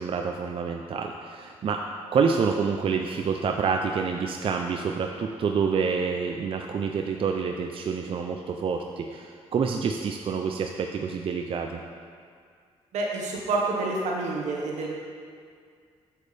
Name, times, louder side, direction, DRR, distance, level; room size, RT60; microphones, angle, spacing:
voice 1, 0.0-1.8 2.1-11.8, right 5 dB, 50° right, 3 dB, 0.5 m, -27 dB
voice 2, 12.9-14.9, right 3 dB, 80° right, -2 dB, 1.4 m, -28 dB
8.1 x 7.3 x 3.4 m, 2.1 s
cardioid pair, 70°, 12 cm